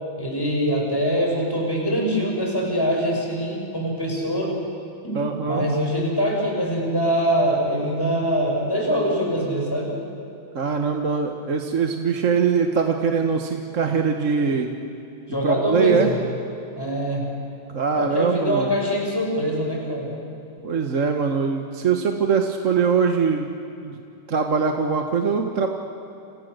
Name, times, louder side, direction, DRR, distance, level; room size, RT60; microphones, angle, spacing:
voice 1, 0.2-4.6 5.0-5.2 5.5-9.9 15.3-16.2 16.7-17.3 17.9-20.1, equal, 10° left, -1 dB, 6.5 m, -23 dB
voice 2, 5.1-5.7 10.5-14.7 15.4-16.1 17.7-18.7 20.6-23.5 23.8-24.0 24.3-25.7, right 5 dB, 45° right, 4 dB, 1.5 m, -22 dB
29.5 x 28.0 x 6.7 m, 2.9 s
omnidirectional pair, 2.2 m